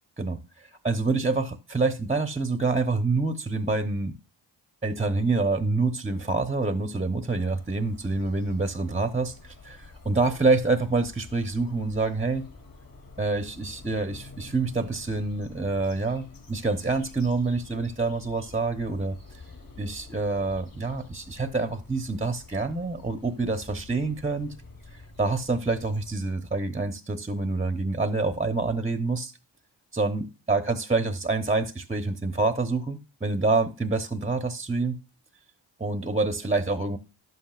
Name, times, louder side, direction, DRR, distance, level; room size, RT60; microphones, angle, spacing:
voice 1, 0.2-4.2 4.8-12.5 13.2-19.2 19.8-24.5 24.9-29.3 29.9-35.0 35.8-37.0, right 3 dB, 15° right, 0.9 m, -27 dB
sound 1, 7.3-26.2, left 3 dB, 45° left, 3.4 m, -48 dB
11.0 x 7.6 x 2.5 m
cardioid pair, 60°, 48 cm